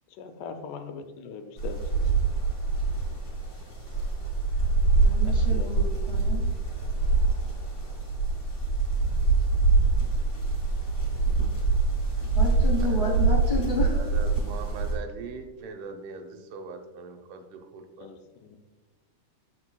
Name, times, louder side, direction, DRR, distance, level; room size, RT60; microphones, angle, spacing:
voice 1, 0.2-1.8 5.5-5.7 18.0-18.2 18.4-18.6, left 6 dB, 85° left, 8 dB, 2.2 m, -39 dB
sound 1, 1.6-15.0, right 3 dB, 30° left, 2.1 m, -25 dB
voice 2, 4.9-6.5 12.3-14.0, left 1 dB, 25° right, -5 dB, 0.8 m, -31 dB
voice 3, 12.8-13.4 13.9-18.1, right 5 dB, 85° right, 5 dB, 2.3 m, -41 dB
13.5 x 4.7 x 2.2 m, 1.2 s
omnidirectional pair, 3.6 m